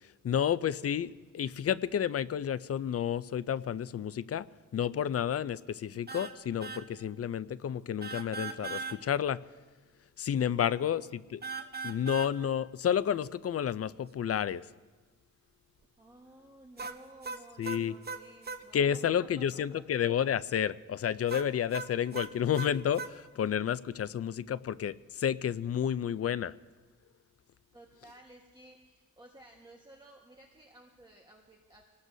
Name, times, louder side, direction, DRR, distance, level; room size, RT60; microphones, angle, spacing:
voice 1, 0.2-4.5 4.7-9.4 10.2-11.0 11.3-11.4 11.8-14.6 17.6-17.9 18.7-26.5, left 9 dB, 50° left, 16 dB, 0.4 m, -30 dB
sound 1, 6.1-6.3 6.6-6.8 8.0-9.0 11.4-12.3 16.8-18.6 21.3-23.1, right 5 dB, 30° right, 0.9 m, -39 dB
voice 2, 10.5-11.0 16.0-19.8 27.7-31.8, right 1 dB, 15° right, -1 dB, 1.4 m, -55 dB
25.5 x 19.5 x 2.7 m, 1.3 s
wide cardioid pair, 130°, 31 cm